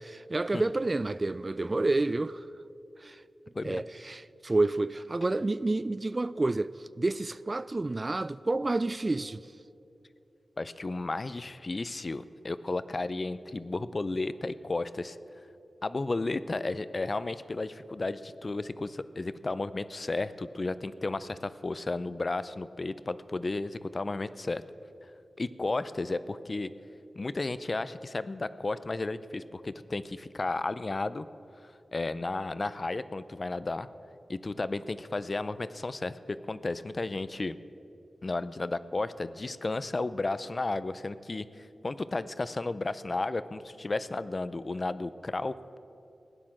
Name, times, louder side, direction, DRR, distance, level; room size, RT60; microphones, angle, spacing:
voice 1, 0.0-2.5 3.0-3.2 3.6-9.5, right 2 dB, 35° right, 0.3 m, -29 dB
voice 2, 10.6-15.2 15.8-24.6 25.4-26.7 27.1-31.3 31.6-33.9 34.3-37.6 38.2-45.8, left 2 dB, 40° left, 0.5 m, -33 dB
16.0 x 9.8 x 7.4 m
cardioid pair, 65°, 0 cm